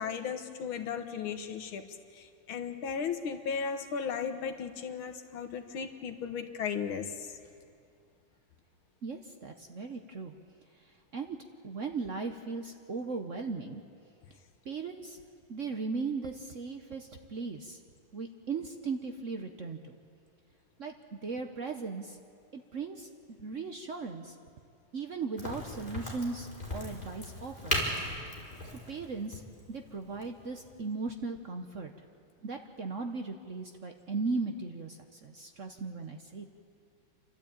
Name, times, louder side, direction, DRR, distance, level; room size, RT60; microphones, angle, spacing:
voice 1, 0.0-1.8 2.1-7.4, left 6 dB, 80° left, 7 dB, 2.0 m, -36 dB
voice 2, 9.0-10.4 10.9-11.4 11.6-13.8 14.6-15.2 15.5-17.8 18.1-19.9 20.8-20.9 21.2-22.2 22.5-24.3 24.9-27.8 28.9-31.9 32.4-36.5, right 4 dB, 50° right, 5 dB, 1.0 m, -37 dB
Crack, 25.4-30.8, left 1 dB, 20° left, 4.3 m, -37 dB
29.0 x 12.5 x 8.7 m, 2.3 s
omnidirectional pair, 2.2 m